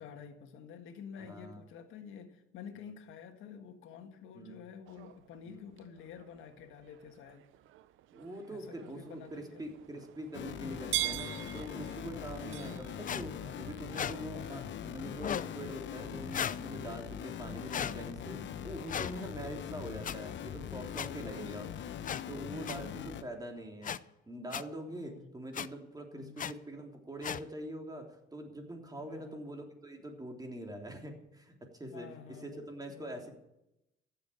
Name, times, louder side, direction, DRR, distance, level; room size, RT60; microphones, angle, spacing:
voice 1, 0.0-7.4 8.5-9.6 14.3-14.6 21.2-21.7 22.5-23.4 24.9-25.3 26.1-26.4 29.0-29.5 31.9-33.2, left 7 dB, 90° left, 6 dB, 1.7 m, -50 dB
voice 2, 1.2-1.6 4.3-4.6 5.4-5.6 8.1-21.7 22.3-24.0 24.3-33.3, right 1 dB, 20° right, 2 dB, 3.3 m, -44 dB
sound 1, 4.9-14.6, right 16 dB, 80° right, 0.6 m, -44 dB
sound 2, 10.3-23.2, left 9 dB, 65° left, 1.0 m, -42 dB
sound 3, 13.0-13.2 13.9-14.1 15.2-15.5 16.3-16.6 17.7-17.9 18.9-19.1 20.0-20.1 20.9-21.1 22.0-22.2 22.6-22.8 23.8-24.0 24.5-24.6 25.5-25.7 26.4-26.5 27.2-27.4, left 8 dB, 40° left, 0.5 m, -35 dB
15.0 x 7.7 x 8.6 m, 0.88 s
cardioid pair, 90°, 20 cm